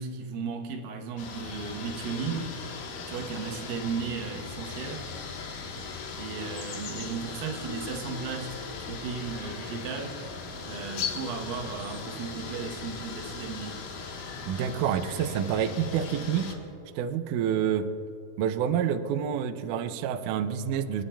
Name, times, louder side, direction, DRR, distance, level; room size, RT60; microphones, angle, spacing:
voice 1, 0.0-2.6 3.1-5.1 6.1-10.2 10.7-13.8, right 5 dB, 75° right, 3 dB, 2.5 m, -35 dB
sound 1, 1.2-16.5, left 5 dB, 70° left, 2.7 m, -38 dB
voice 2, 14.5-16.5 17.0-17.9 18.4-21.0, right 8 dB, 90° right, 9 dB, 1.8 m, -28 dB
26.0 x 10.0 x 2.2 m, 2.8 s
omnidirectional pair, 4.4 m